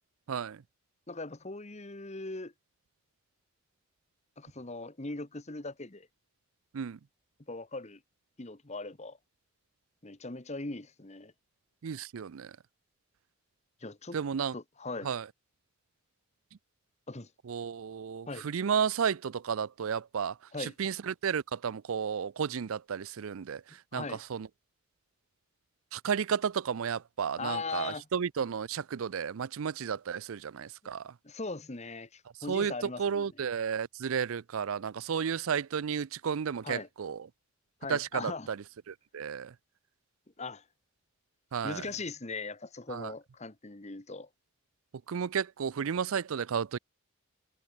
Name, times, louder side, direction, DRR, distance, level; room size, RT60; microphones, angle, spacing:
voice 1, 0.3-0.6 6.7-7.0 11.8-12.5 14.1-14.5 15.0-15.3 17.5-24.5 25.9-31.1 32.5-32.7 33.0-37.3 37.9-39.5 41.5-41.8 42.9-43.1 45.1-46.8, right 7 dB, 70° right, 0.4 m, -33 dB
voice 2, 1.1-2.5 4.4-6.1 7.5-8.0 8.4-9.2 10.0-11.3 13.8-14.2 14.5-15.1 17.1-17.3 18.3-18.5 20.5-20.7 23.9-24.2 27.4-28.1 31.2-33.2 36.6-36.9 37.8-38.5 40.4-40.6 41.6-44.3, left 3 dB, 30° left, 1.2 m, -39 dB
head